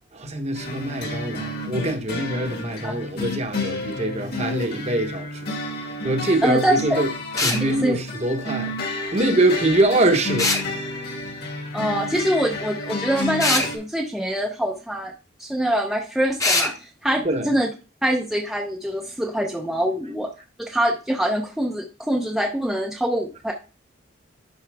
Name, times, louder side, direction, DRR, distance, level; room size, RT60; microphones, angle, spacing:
voice 1, 0.1-5.5 6.0-7.1 7.4-8.7 9.1-10.5 17.2-17.5, right 1 dB, 30° right, 0.9 m, -23 dB
sound 1, 0.5-13.8, left 2 dB, 50° left, 1.8 m, -31 dB
voice 2, 6.4-7.0 7.7-8.0 11.7-15.1 15.4-17.7 18.0-20.3 20.6-23.5, right 1 dB, ahead, 0.6 m, -24 dB
sound 2, 7.4-7.6 10.4-10.7 13.4-13.7 16.4-16.7, left 2 dB, 15° left, 0.9 m, -21 dB
10.5 x 4.3 x 3.4 m
head